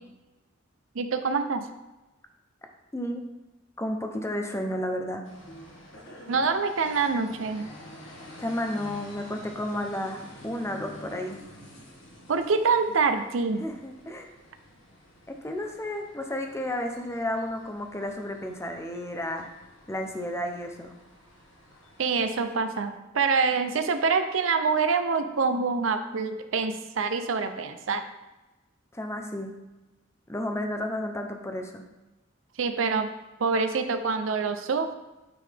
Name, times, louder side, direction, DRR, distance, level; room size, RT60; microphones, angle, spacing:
voice 1, 0.9-1.7 6.3-7.7 12.3-13.6 22.0-28.0 32.6-33.1 33.4-34.9, right 4 dB, 75° right, 8 dB, 0.5 m, -26 dB
voice 2, 2.9-3.2 3.8-5.2 8.4-11.4 13.6-14.3 15.3-19.5 19.9-20.9 28.9-29.5 30.3-31.8, left 1 dB, 15° left, 4 dB, 0.7 m, -32 dB
sound 1, 5.2-22.4, left 1 dB, 65° left, 1.8 m, -49 dB
9.2 x 4.0 x 3.5 m, 1.0 s
head